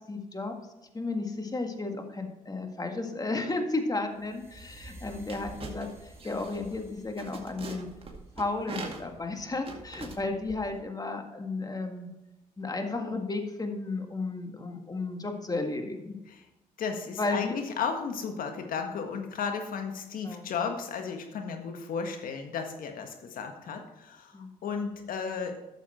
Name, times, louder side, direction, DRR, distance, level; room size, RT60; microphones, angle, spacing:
voice 1, 0.1-0.5 0.9-5.9 6.2-7.9 8.4-12.1 12.6-16.2 17.2-17.5 20.2-20.5 24.3-24.5, left 3 dB, 25° left, 4 dB, 1.9 m, -33 dB
sound 1, 4.1-9.2, right 1 dB, 15° right, 2.1 m, -52 dB
sound 2, 5.3-10.8, right 3 dB, 40° right, 2.1 m, -43 dB
voice 2, 16.8-25.6, left 6 dB, 70° left, 5 dB, 1.6 m, -34 dB
12.0 x 7.1 x 4.4 m, 0.99 s
supercardioid pair, 60°, 15 cm